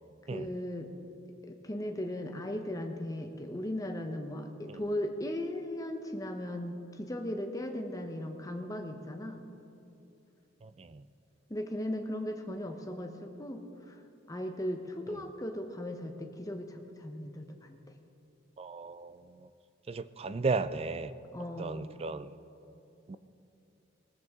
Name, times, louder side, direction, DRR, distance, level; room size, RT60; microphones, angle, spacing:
voice 1, 0.3-0.9 1.4-9.4 11.5-13.9 14.3-17.8 21.3-21.9, left 1 dB, 15° left, 5 dB, 0.9 m, -37 dB
voice 2, 10.6-11.0 15.1-15.2 18.6-19.2 19.9-21.1 21.6-22.3 23.1-23.2, right 4 dB, 30° right, 14 dB, 0.3 m, -35 dB
19.0 x 14.0 x 3.6 m, 2.8 s
head